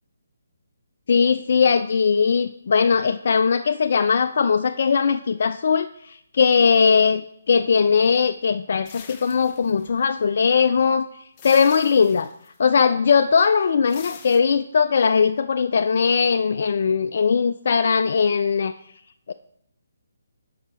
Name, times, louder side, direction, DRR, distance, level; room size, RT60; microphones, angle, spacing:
voice 1, 1.1-11.1 11.4-12.3 12.6-18.7 19.3-19.4, left 6 dB, 55° left, 8 dB, 0.3 m, -19 dB
sound 1, 8.8-10.3 11.4-12.6 13.9-14.4, left 6 dB, 25° left, 0.7 m, -43 dB
5.4 x 4.9 x 6.1 m, 0.72 s
hypercardioid pair, 155°, 0 cm